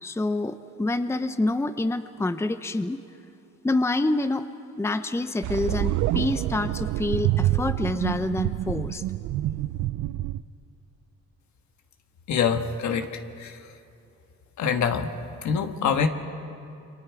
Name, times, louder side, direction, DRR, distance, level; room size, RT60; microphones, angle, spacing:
voice 1, 0.0-3.0 3.6-4.5 4.8-9.0, left 2 dB, 10° left, 10 dB, 0.7 m, -27 dB
sound 1, 5.4-10.4, right 14 dB, 75° right, 0.5 m, -27 dB
voice 2, 12.3-13.1 13.4-13.5 14.6-15.1 15.4-16.1, left 6 dB, 70° left, 6 dB, 1.5 m, -24 dB
29.0 x 23.5 x 4.8 m, 2.8 s
cardioid pair, 90°, 30 cm